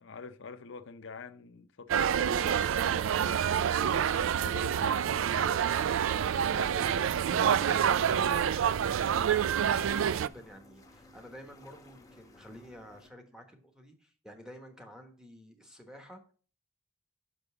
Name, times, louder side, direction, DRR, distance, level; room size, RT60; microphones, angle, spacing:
voice 1, 0.0-6.0 6.4-8.6, left 4 dB, 60° left, 0.6 m, -46 dB
sound 1, 1.9-10.3, right 8 dB, 65° right, 0.3 m, -27 dB
sound 2, 7.4-13.1, left 2 dB, 15° left, 0.9 m, -55 dB
voice 2, 9.6-16.2, equal, 5° right, 1.1 m, -50 dB
5.9 x 5.3 x 6.8 m
head